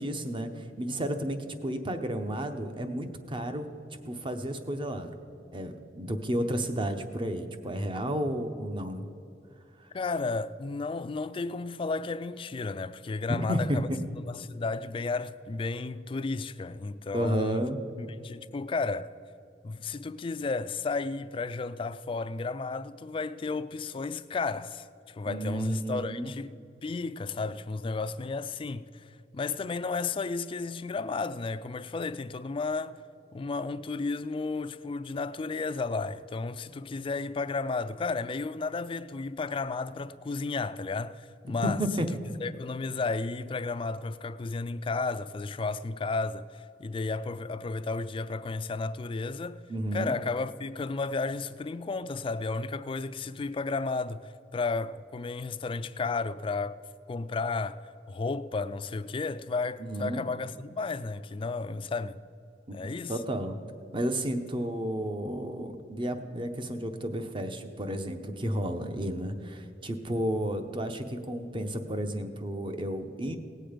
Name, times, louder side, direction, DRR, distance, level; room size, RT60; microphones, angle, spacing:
voice 1, 0.0-5.2 5.5-9.1 9.8-9.9 13.3-14.0 17.1-17.8 25.3-26.3 41.6-42.1 49.7-50.2 59.8-60.3 62.7-63.6 63.9-73.4, right 1 dB, 30° right, 0.8 m, -32 dB
voice 2, 9.9-17.6 18.0-19.1 19.6-26.6 26.8-29.0 29.3-33.0 33.3-41.8 42.4-49.6 49.9-56.8 57.1-57.8 58.1-62.2 62.7-63.2, left 3 dB, 30° left, 0.3 m, -33 dB
18.0 x 7.7 x 5.1 m
head